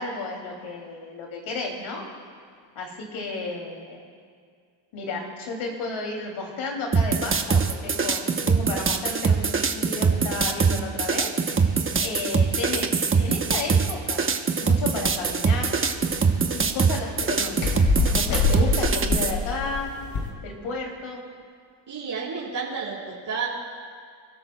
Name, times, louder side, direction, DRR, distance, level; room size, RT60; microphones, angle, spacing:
voice 1, 0.0-2.1 2.7-4.1 4.9-14.3 14.6-15.8 16.5-17.9 18.1-19.9 20.4-21.2, left 3 dB, 80° left, 0 dB, 2.8 m, -33 dB
sound 1, 6.9-19.3, right 5 dB, 25° right, 0.9 m, -23 dB
sound 2, 15.0-20.3, left 4 dB, 55° left, 2.9 m, -27 dB
voice 2, 21.9-23.5, right 5 dB, 60° right, -8 dB, 4.2 m, -31 dB
28.0 x 12.5 x 2.3 m, 2.1 s
cardioid pair, 90°, 48 cm